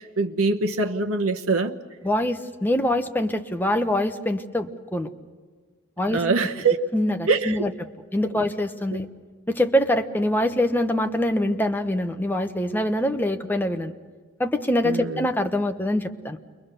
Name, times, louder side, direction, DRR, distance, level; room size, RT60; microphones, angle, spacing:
voice 1, 0.0-1.8 6.1-6.8 7.3-7.6 14.8-15.3, right 3 dB, 90° right, 1.0 m, -23 dB
voice 2, 2.0-5.1 6.0-6.5 6.9-7.7 8.1-9.1 9.5-13.9 14.4-16.4, left 1 dB, 10° left, 0.9 m, -24 dB
29.0 x 22.5 x 6.7 m
head